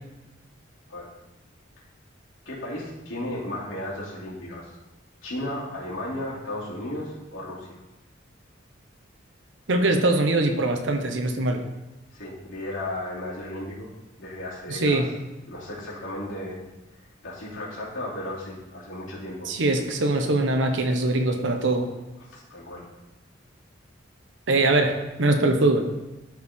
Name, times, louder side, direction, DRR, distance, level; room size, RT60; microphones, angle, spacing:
voice 1, 2.4-4.7 5.2-7.8 12.1-13.9 14.2-15.0 15.5-16.6 17.2-19.5 22.3-22.9, left 1 dB, 80° left, -6 dB, 2.8 m, -34 dB
voice 2, 9.7-11.6 14.7-15.1 19.5-21.9 24.5-25.8, right 2 dB, 75° right, 4 dB, 1.0 m, -22 dB
12.5 x 4.5 x 3.7 m, 1.1 s
head